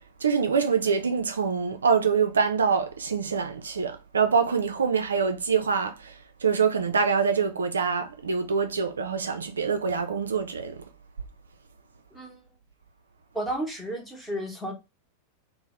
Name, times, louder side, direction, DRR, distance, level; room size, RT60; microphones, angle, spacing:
voice 1, 0.2-6.1 6.4-10.8, right 6 dB, 70° right, 0.3 m, -25 dB
voice 2, 12.1-12.4 13.3-14.7, right 1 dB, 5° left, 0.9 m, -32 dB
2.7 x 2.0 x 2.9 m
figure-of-eight pair, 90°, 0 cm